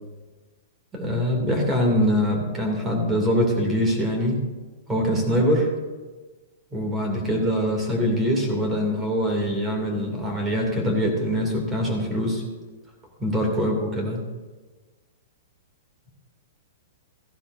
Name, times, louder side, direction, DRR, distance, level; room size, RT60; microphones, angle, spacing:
voice 1, 0.9-4.4 4.9-5.7 6.7-12.4 13.2-14.2, equal, 15° right, 1 dB, 2.5 m, -23 dB
15.0 x 11.5 x 2.6 m, 1.3 s
hypercardioid pair, 135°, 0 cm